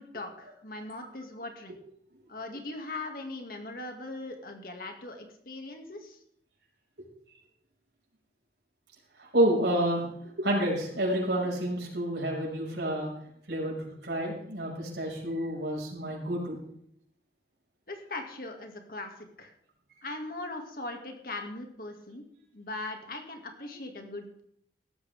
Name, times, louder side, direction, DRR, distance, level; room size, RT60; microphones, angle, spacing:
voice 1, 0.0-1.8 2.3-6.2 17.9-19.5 20.0-22.2 22.5-24.3, left 2 dB, 55° left, 4 dB, 2.2 m, -40 dB
voice 2, 9.2-10.1 10.4-13.1 13.5-16.6, right 1 dB, 75° right, -2 dB, 5.9 m, -29 dB
17.5 x 14.0 x 3.6 m, 0.69 s
head